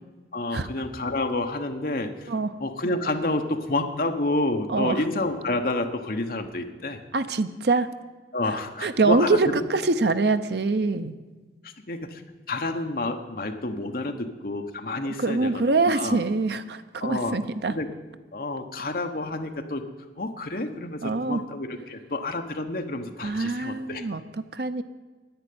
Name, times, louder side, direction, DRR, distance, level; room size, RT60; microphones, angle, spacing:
voice 1, 0.3-2.3 2.6-7.0 8.3-9.6 11.9-12.2 12.5-16.2 17.0-17.3 17.7-17.9 18.3-19.9 20.2-24.1, left 2 dB, 55° left, 5 dB, 1.2 m, -29 dB
voice 2, 4.7-5.0 7.1-7.9 8.8-11.2 15.0-17.7 21.0-21.4 23.2-24.8, right 3 dB, 70° right, 11 dB, 0.7 m, -24 dB
10.5 x 9.8 x 9.5 m, 1.3 s
head